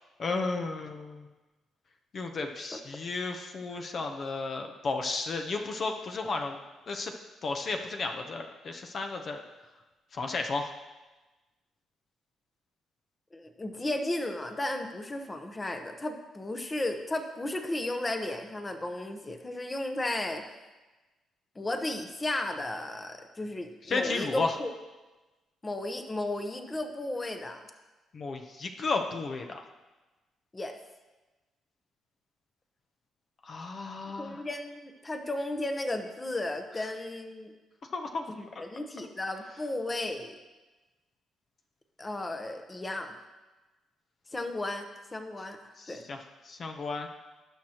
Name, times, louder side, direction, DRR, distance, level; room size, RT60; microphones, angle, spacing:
voice 1, 0.2-1.3 2.1-6.6 6.9-7.1 7.4-9.4 10.1-10.7 23.9-24.5 28.1-29.6 33.5-34.4 37.9-38.2 45.8-46.2 46.5-47.1, left 3 dB, 50° left, 4 dB, 0.8 m, -33 dB
voice 2, 13.3-20.4 21.6-24.7 25.6-27.6 30.5-30.8 34.2-37.5 38.3-40.3 42.0-43.1 44.3-44.9 45.1-46.0, left 1 dB, 20° left, 6 dB, 0.9 m, -34 dB
18.0 x 6.3 x 3.0 m, 1.2 s
cardioid pair, 90°, 0 cm